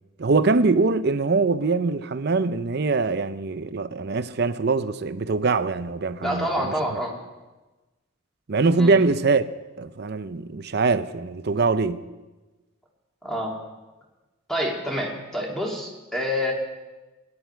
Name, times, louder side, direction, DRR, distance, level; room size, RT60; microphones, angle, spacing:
voice 1, 0.2-7.0 8.5-9.4 9.8-12.0, right 3 dB, 50° right, 0.6 m, -23 dB
voice 2, 6.2-7.1 8.7-8.9 13.2-13.5 14.5-16.5, equal, ahead, 2.6 m, -27 dB
20.5 x 11.5 x 4.5 m
head